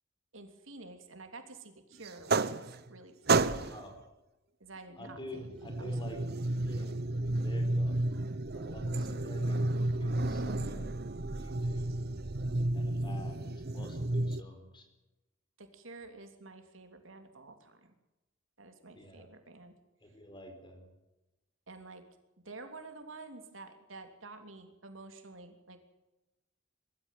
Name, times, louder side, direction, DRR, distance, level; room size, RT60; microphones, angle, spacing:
voice 1, 0.3-3.8 4.6-5.5 5.8-6.0 15.6-17.9 18.6-19.7 21.7-22.0 22.4-25.8, right 3 dB, 80° right, 6 dB, 3.2 m, -50 dB
sound 1, 2.0-3.0 3.3-3.9 5.1-14.4, right 2 dB, 55° right, 1.0 m, -32 dB
voice 2, 3.5-3.9 5.0-6.9 7.4-8.0 8.5-9.7 10.0-10.9 11.3-12.0 12.7-14.9 19.0-19.3 20.0-20.9, left 1 dB, 25° left, 6 dB, 4.7 m, -49 dB
23.0 x 13.5 x 9.2 m, 1.0 s
head